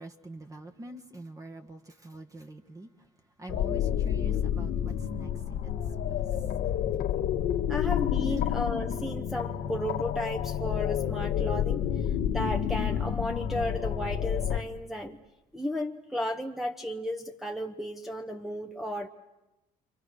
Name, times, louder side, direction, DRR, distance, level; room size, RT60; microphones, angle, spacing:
voice 1, 0.0-2.9 3.4-5.7 6.0-6.2, right 1 dB, 20° right, 1.6 m, -45 dB
sound 1, 3.5-14.6, left 9 dB, 85° left, 1.7 m, -29 dB
voice 2, 7.7-15.2 15.5-19.1, equal, ahead, 1.0 m, -34 dB
28.5 x 26.0 x 6.5 m
cardioid pair, 110°, 17 cm